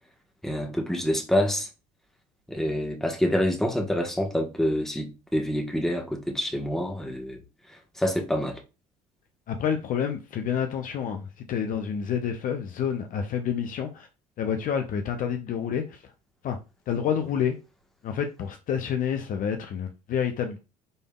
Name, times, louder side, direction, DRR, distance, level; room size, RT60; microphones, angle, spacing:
voice 1, 0.4-1.7 2.5-7.4 7.7-8.6, equal, ahead, 1.3 m, -27 dB
voice 2, 9.5-14.1 14.4-16.1 16.4-16.6 16.9-17.6 18.0-20.6, left 8 dB, 45° left, 0.6 m, -28 dB
5.3 x 3.4 x 2.3 m
figure-of-eight pair, 60°, 20 cm